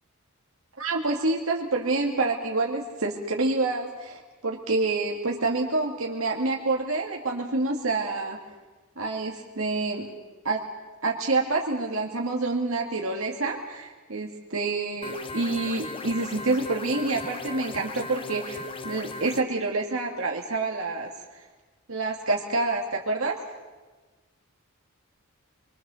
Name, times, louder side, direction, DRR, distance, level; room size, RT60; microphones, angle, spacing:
voice 1, 0.8-8.4 9.0-10.1 10.4-10.6 11.0-21.1 21.9-23.4, right 3 dB, 70° right, 0 dB, 1.9 m, -27 dB
sound 1, 15.0-19.4, left 3 dB, 25° left, 1.0 m, -37 dB
25.5 x 23.0 x 6.9 m, 1.3 s
head